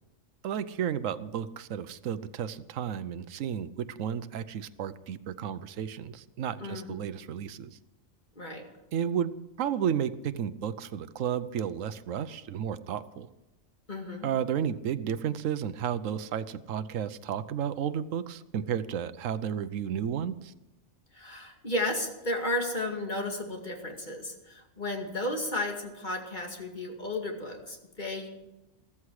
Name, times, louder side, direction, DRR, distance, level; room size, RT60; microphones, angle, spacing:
voice 1, 0.4-7.8 8.9-9.3 9.6-13.3 14.2-20.5, right 8 dB, 80° right, 13 dB, 1.1 m, -32 dB
voice 2, 6.6-7.1 8.4-8.6 13.9-14.3 21.1-28.3, left 1 dB, 35° left, 2 dB, 2.4 m, -33 dB
14.5 x 14.5 x 4.8 m, 0.98 s
omnidirectional pair, 1.3 m